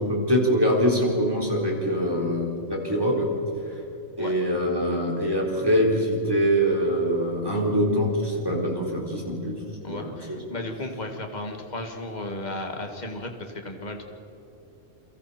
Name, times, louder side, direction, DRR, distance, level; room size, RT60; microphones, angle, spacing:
voice 1, 0.0-3.3 3.6-3.8 4.2-9.6 9.9-10.4, equal, 15° right, -1 dB, 4.3 m, -24 dB
voice 2, 9.8-14.0, left 2 dB, 35° left, 3 dB, 2.2 m, -34 dB
29.0 x 24.0 x 4.4 m, 2.9 s
omnidirectional pair, 1.3 m